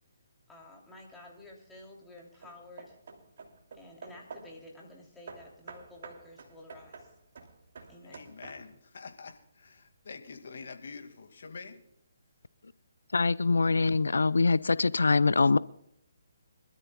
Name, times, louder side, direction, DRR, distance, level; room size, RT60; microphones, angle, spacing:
voice 1, 0.5-3.0 3.7-7.1 7.9-8.2, left 1 dB, 5° left, 3.1 m, -51 dB
Hammer / Wood, 1.1-1.5 2.2-4.6 5.3-8.9, right 4 dB, 55° right, 2.8 m, -49 dB
voice 2, 8.0-11.8, left 4 dB, 65° left, 2.1 m, -46 dB
voice 3, 13.1-15.6, left 4 dB, 90° left, 0.5 m, -24 dB
26.0 x 13.0 x 2.3 m
hypercardioid pair, 155°, 0 cm